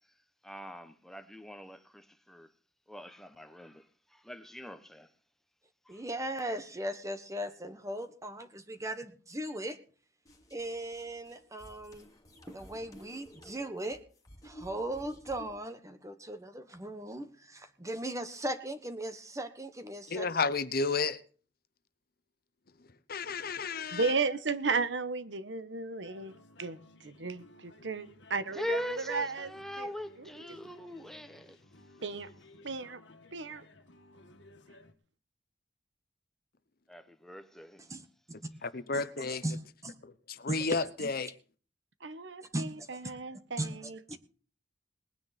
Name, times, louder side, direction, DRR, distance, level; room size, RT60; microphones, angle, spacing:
voice 1, 0.4-2.5 2.9-5.1 5.9-6.0 28.5-31.6 36.9-37.8, equal, ahead, 1.1 m, -42 dB
voice 2, 5.9-9.8 10.5-12.1 12.5-14.0 14.4-20.3 37.8-38.0 38.9-39.0 39.4-39.6 39.8-40.0 40.5-40.7 41.0-41.1 42.5-43.1 43.6-44.2, right 1 dB, 20° right, 1.3 m, -38 dB
sound 1, 10.3-15.6, equal, 20° left, 2.5 m, -53 dB
voice 3, 20.1-21.2 23.1-24.1 38.6-39.4 40.0-41.3, left 4 dB, 55° left, 1.0 m, -32 dB
voice 4, 23.9-26.8 27.0-29.5 29.8-29.9 32.0-32.3 32.6-33.0 33.3-33.6 42.0-44.2, right 4 dB, 85° right, 1.2 m, -34 dB
sound 2, 26.0-34.9, left 2 dB, 85° left, 1.9 m, -57 dB
20.0 x 9.7 x 4.3 m
head